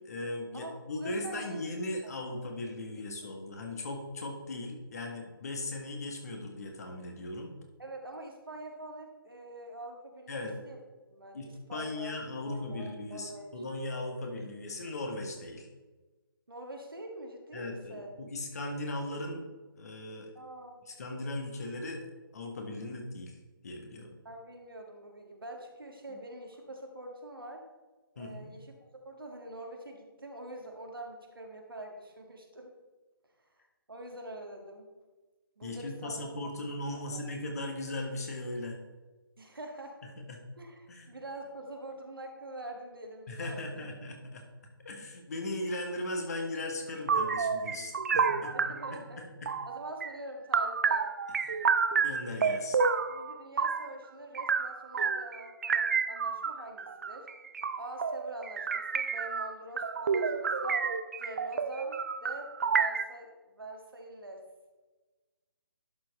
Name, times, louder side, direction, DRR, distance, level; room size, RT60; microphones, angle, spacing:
voice 1, 0.0-7.5 10.3-10.5 11.3-15.7 17.5-19.5 19.7-20.3 20.9-22.0 22.3-23.4 23.6-24.2 26.1-26.2 28.1-28.5 35.6-38.8 40.3-40.4 40.9-41.1 43.3-44.4 44.8-48.5 48.9-49.5 51.3-52.8, left 2 dB, 45° left, 3 dB, 1.6 m, -38 dB
voice 2, 0.5-1.7 2.0-2.4 7.8-10.8 11.1-12.2 12.4-13.5 16.5-18.1 20.3-20.8 24.2-27.6 28.1-28.8 29.0-32.7 33.9-34.9 35.6-36.5 37.1-37.3 39.4-40.0 40.6-43.9 48.3-49.2 49.6-51.1 53.1-57.3 57.8-60.8 61.2-64.4, right 1 dB, 70° right, 2 dB, 1.7 m, -45 dB
sound 1, 47.1-49.0 49.5-50.1 50.5-53.9 54.3-63.0, right 5 dB, 40° right, 0.4 m, -30 dB
11.5 x 4.8 x 4.2 m, 1.2 s
figure-of-eight pair, 145°, 12 cm